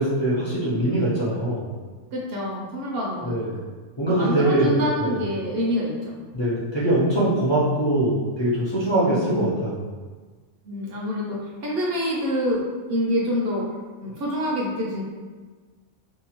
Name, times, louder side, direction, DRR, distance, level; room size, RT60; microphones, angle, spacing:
voice 1, 0.0-1.7 3.2-3.5 4.0-5.2 6.3-9.8, right 1 dB, 40° left, -9 dB, 0.4 m, -22 dB
voice 2, 2.1-3.4 4.1-6.2 9.0-9.6 10.6-12.6 12.9-13.6 14.0-15.0, equal, 60° right, -3 dB, 0.7 m, -26 dB
2.7 x 2.3 x 2.8 m, 1.4 s
omnidirectional pair, 1.3 m